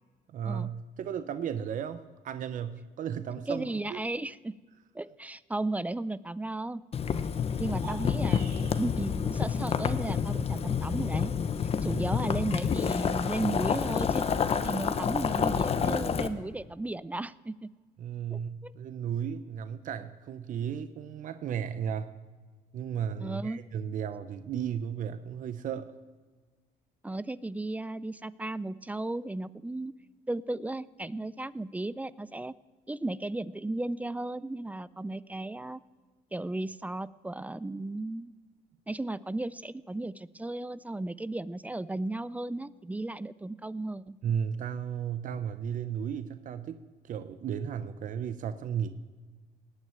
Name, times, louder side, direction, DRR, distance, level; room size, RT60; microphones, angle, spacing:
voice 1, 0.3-4.0 11.8-12.0 18.0-22.1 22.7-25.9 44.2-48.9, right 8 dB, 50° right, 10 dB, 0.7 m, -34 dB
voice 2, 3.5-4.5 4.9-6.8 7.6-8.5 8.8-11.3 11.8-17.7 18.3-18.7 23.2-23.6 27.0-29.9 30.3-32.5 32.9-35.8 36.3-38.3 38.9-44.2, right 2 dB, 10° right, 18 dB, 0.3 m, -35 dB
Boiling, 6.9-16.3, left 7 dB, 35° left, 0.9 m, -29 dB
sound 1, 7.7-8.9, right 4 dB, 70° right, 5.7 m, -44 dB
18.5 x 6.4 x 8.9 m, 1.4 s
cardioid pair, 110°, 17 cm